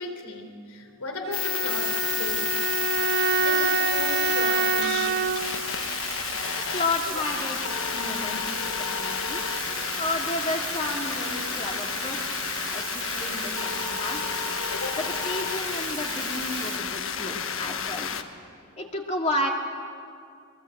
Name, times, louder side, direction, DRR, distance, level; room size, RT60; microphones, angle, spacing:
voice 1, 0.0-2.5 2.9-3.0 3.3-5.2 14.7-15.0, left 2 dB, 80° left, 4 dB, 3.9 m, -35 dB
Bowed string instrument, 1.2-5.7, right 6 dB, 45° right, 0.5 m, -26 dB
sound 1, 1.3-18.2, left 8 dB, 60° left, 1.3 m, -30 dB
Bathtub (filling or washing), 1.7-16.8, right 13 dB, 85° right, 0.9 m, -38 dB
voice 2, 6.7-7.6 7.9-8.4 8.8-9.4 10.0-14.4 15.0-18.1 18.8-19.5, left 2 dB, 30° left, 1 dB, 2.5 m, -32 dB
24.5 x 23.5 x 8.1 m, 2.3 s
head